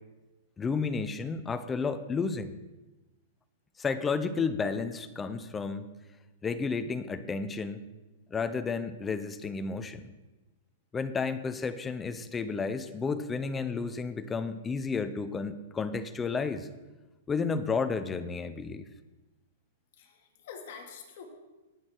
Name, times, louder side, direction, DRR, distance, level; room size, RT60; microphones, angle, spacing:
voice 1, 0.6-2.5 3.8-5.9 6.4-7.8 8.3-10.1 10.9-16.7 17.3-18.9, left 5 dB, 15° left, 11 dB, 0.7 m, -32 dB
voice 2, 19.9-21.2, left 6 dB, 55° left, 1 dB, 2.7 m, -46 dB
18.5 x 6.4 x 4.6 m, 1.1 s
hypercardioid pair, 155°, 0 cm